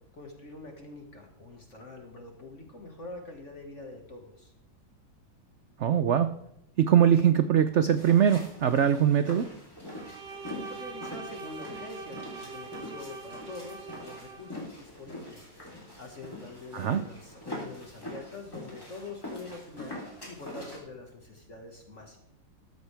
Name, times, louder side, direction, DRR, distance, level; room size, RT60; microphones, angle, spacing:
voice 1, 0.1-4.5 10.5-15.5 16.0-22.2, left 3 dB, 40° left, 2 dB, 1.9 m, -45 dB
voice 2, 5.8-6.3 6.8-9.5 16.7-17.0, right 9 dB, 90° right, 10 dB, 0.6 m, -22 dB
sound 1, 7.9-20.8, left 1 dB, 10° left, 3.5 m, -43 dB
Bowed string instrument, 9.9-14.6, right 5 dB, 75° right, 1.8 m, -43 dB
14.5 x 13.5 x 3.4 m, 0.77 s
omnidirectional pair, 2.0 m